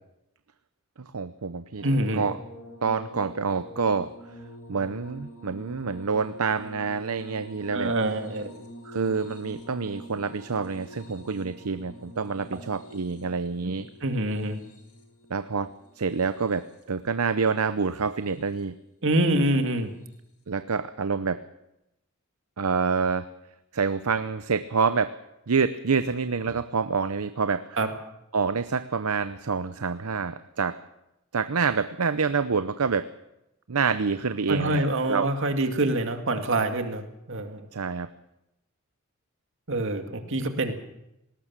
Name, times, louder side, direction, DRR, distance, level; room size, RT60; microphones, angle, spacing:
voice 1, 1.0-1.8 2.1-2.4 2.8-4.1 4.7-7.9 8.8-13.9 15.3-15.7 16.0-18.8 20.5-21.4 22.6-23.3 23.7-25.1 25.5-27.7 28.3-30.8 31.3-33.1 33.7-34.8 35.1-35.3 37.7-38.1, right 5 dB, 85° right, 12 dB, 0.8 m, -27 dB
sound 1, 1.8-17.0 17.9-18.6 20.0-20.2, equal, 85° left, 4.5 m, -46 dB
voice 2, 1.8-2.3 7.7-8.5 14.0-14.6 19.0-19.9 27.8-27.9 34.5-37.7 39.7-40.7, right 1 dB, 60° right, 6 dB, 2.4 m, -26 dB
19.5 x 18.5 x 7.4 m, 0.86 s
head